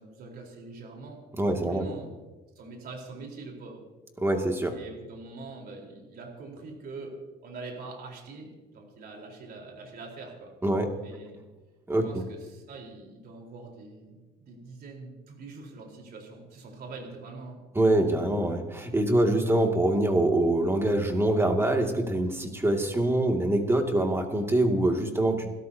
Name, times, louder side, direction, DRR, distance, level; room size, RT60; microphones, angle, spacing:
voice 1, 0.0-2.2 2.6-3.8 4.7-7.2 7.4-10.5 11.0-11.4 12.0-17.6, right 3 dB, 55° right, 0 dB, 4.2 m, -44 dB
voice 2, 1.4-1.9 4.2-4.7 10.6-10.9 11.9-12.2 17.7-25.5, right 1 dB, 10° right, 3 dB, 2.3 m, -24 dB
29.5 x 13.5 x 2.8 m, 1.2 s
cardioid pair, 115°, 20 cm